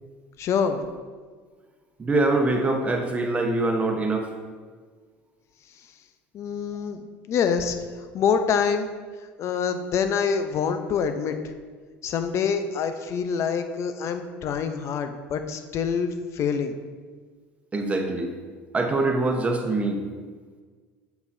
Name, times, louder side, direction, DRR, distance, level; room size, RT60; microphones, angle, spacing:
voice 1, 0.4-0.8 6.3-7.7 8.1-8.9 9.4-11.4 12.0-16.8, left 6 dB, 50° left, 8 dB, 0.7 m, -26 dB
voice 2, 2.0-4.3 17.7-18.3 18.7-20.0, right 2 dB, 20° right, 3 dB, 1.1 m, -24 dB
8.1 x 6.9 x 2.7 m, 1.5 s
supercardioid pair, 90°, 6 cm